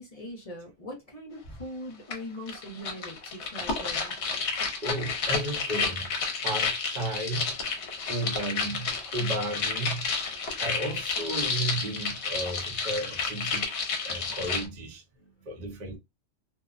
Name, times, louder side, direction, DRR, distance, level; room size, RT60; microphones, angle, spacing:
voice 1, 0.0-4.1 15.2-15.7, equal, 35° left, 0.7 m, -41 dB
sound 1, 2.1-2.2 2.5-14.7, left 4 dB, 60° left, 0.9 m, -31 dB
voice 2, 4.8-6.1 6.4-7.6 8.1-10.1 10.6-13.8 14.0-15.0 15.5-16.0, right 1 dB, 45° right, 0.8 m, -33 dB
2.7 x 2.1 x 2.4 m
omnidirectional pair, 1.4 m